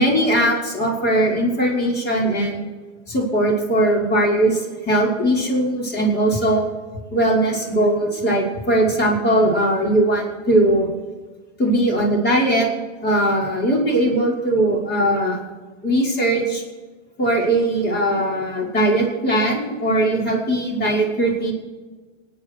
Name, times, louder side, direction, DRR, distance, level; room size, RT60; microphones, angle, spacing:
voice 1, 0.0-2.6 3.1-6.6 7.1-10.9 11.6-12.7 13.0-15.4 15.8-16.6 17.2-21.5, right 1 dB, 30° left, -2 dB, 5.6 m, -19 dB
27.5 x 9.5 x 4.8 m, 1.3 s
supercardioid pair, 130°, 37 cm